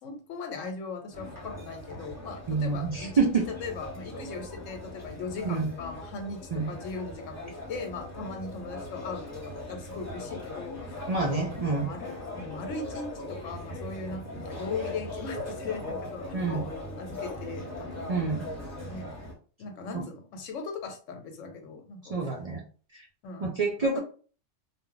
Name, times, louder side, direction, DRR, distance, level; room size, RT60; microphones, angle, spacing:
voice 1, 0.0-11.0 11.5-16.6 17.0-18.3 18.8-19.2 19.6-22.1 23.2-23.5 23.8-24.0, left 4 dB, 80° left, 1.0 m, -39 dB
sound 1, 1.1-19.3, left 1 dB, 15° left, 0.9 m, -40 dB
voice 2, 2.5-3.4 5.4-5.7 6.5-6.7 11.1-11.9 16.3-16.7 18.1-18.5 19.9-20.0 22.1-22.6 22.9-23.0 23.4-24.0, right 4 dB, 80° right, 0.3 m, -27 dB
2.3 x 2.0 x 3.7 m
omnidirectional pair, 1.3 m